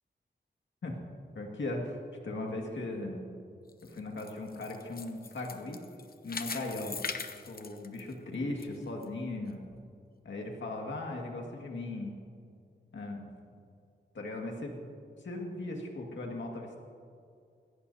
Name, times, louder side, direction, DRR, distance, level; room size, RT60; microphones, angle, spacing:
voice 1, 1.3-2.0 2.2-3.3 3.8-5.8 6.2-7.0 7.5-9.6 10.2-12.1 12.9-13.3 14.1-14.9 15.2-16.8, left 2 dB, 75° left, 1 dB, 2.0 m, -38 dB
sound 1, 3.7-8.7 9.0-9.1 9.7-9.8, left 5 dB, 55° left, 0.8 m, -41 dB
20.5 x 16.5 x 2.8 m, 2.4 s
wide cardioid pair, 85°, 19 cm